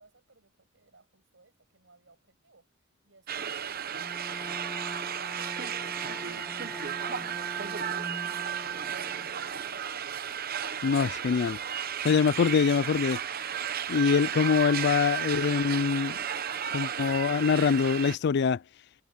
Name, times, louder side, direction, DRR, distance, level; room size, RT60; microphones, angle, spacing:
voice 1, 0.0-2.6 3.0-4.0 5.4-9.9, right 3 dB, 65° right, 7.8 m, -56 dB
sound 1, 3.3-18.2, right 8 dB, 50° right, 0.9 m, -34 dB
Bowed string instrument, 4.0-9.9, equal, ahead, 2.4 m, -44 dB
voice 2, 10.8-11.6 12.0-13.2 13.9-16.2 16.7-18.6, left 6 dB, 55° left, 0.4 m, -24 dB
head